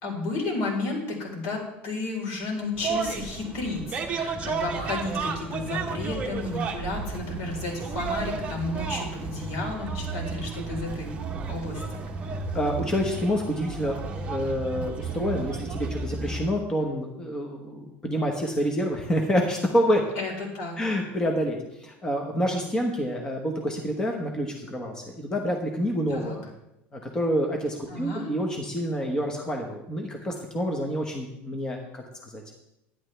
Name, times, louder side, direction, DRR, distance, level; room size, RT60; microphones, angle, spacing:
voice 1, 0.0-11.1 11.5-12.0 20.1-20.8 26.1-26.4 27.9-28.3, left 3 dB, 70° left, 0 dB, 4.1 m, -32 dB
sound 1, 2.8-16.5, right 4 dB, 25° right, 1.1 m, -33 dB
voice 2, 12.5-20.1 20.8-21.6 21.8-26.5 26.9-32.4, equal, 15° left, 1 dB, 1.2 m, -28 dB
11.5 x 10.0 x 3.4 m, 0.88 s
cardioid pair, 150°, 5 cm